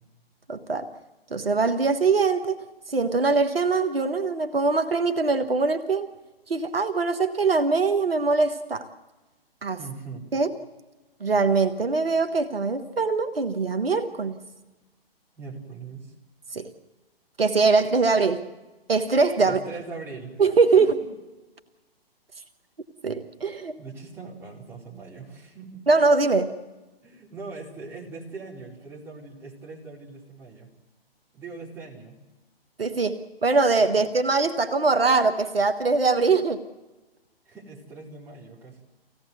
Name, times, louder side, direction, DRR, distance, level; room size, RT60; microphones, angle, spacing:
voice 1, 0.5-0.9 1.3-6.1 6.5-8.9 9.6-9.8 10.3-10.5 11.2-14.4 16.5-16.7 17.4-18.5 18.9-19.6 20.4-21.0 23.0-23.8 25.9-26.5 32.8-36.6, right 4 dB, 70° right, 8 dB, 1.4 m, -22 dB
voice 2, 9.8-10.3 15.4-16.1 19.4-20.4 20.8-21.1 23.8-25.8 27.0-30.7 31.3-32.2 33.9-34.0 37.4-38.8, right 4 dB, 10° right, -5 dB, 4.6 m, -41 dB
25.0 x 17.0 x 8.0 m, 1.1 s
figure-of-eight pair, 125°, 30 cm